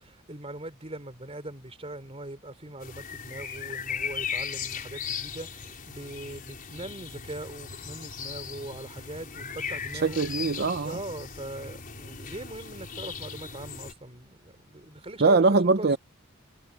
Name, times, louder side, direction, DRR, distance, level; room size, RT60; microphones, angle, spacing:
voice 1, 0.0-10.2 10.7-15.5 15.8-16.0, right 1 dB, 30° right, 3.6 m, -41 dB
sound 1, 2.8-13.9, left 6 dB, 45° left, 5.0 m, -37 dB
voice 2, 10.0-11.0 15.2-16.0, right 3 dB, 50° right, 0.7 m, -22 dB
head